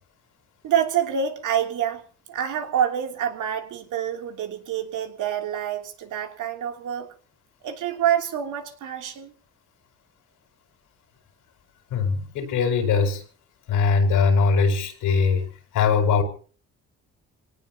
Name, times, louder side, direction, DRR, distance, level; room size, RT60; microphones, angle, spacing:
voice 1, 0.6-2.0 2.3-7.1 7.6-9.3, right 9 dB, 80° right, 5 dB, 3.0 m, -27 dB
voice 2, 11.9-13.2 13.7-15.5 15.7-16.2, left 5 dB, 90° left, 6 dB, 4.9 m, -21 dB
26.0 x 18.5 x 2.9 m, 0.41 s
cardioid pair, 90°, 30 cm